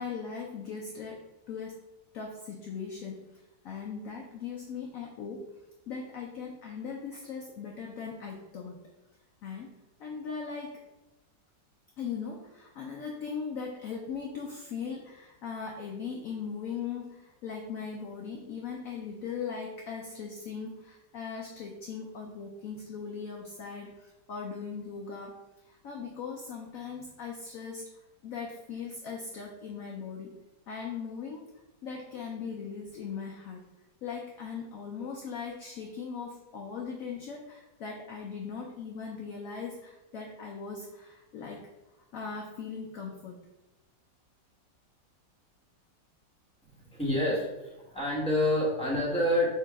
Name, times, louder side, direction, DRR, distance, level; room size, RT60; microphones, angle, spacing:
voice 1, 0.0-1.8 2.1-5.5 5.9-8.9 9.4-9.7 10.0-10.8 12.0-25.4 25.6-27.9 28.2-30.3 30.7-31.5 31.8-33.7 34.0-41.7 42.1-43.5, left 5 dB, 75° left, 0 dB, 0.8 m, -39 dB
voice 2, 46.7-49.5, left 1 dB, 5° left, -6 dB, 0.9 m, -28 dB
3.6 x 2.9 x 4.5 m, 1.0 s
omnidirectional pair, 2.0 m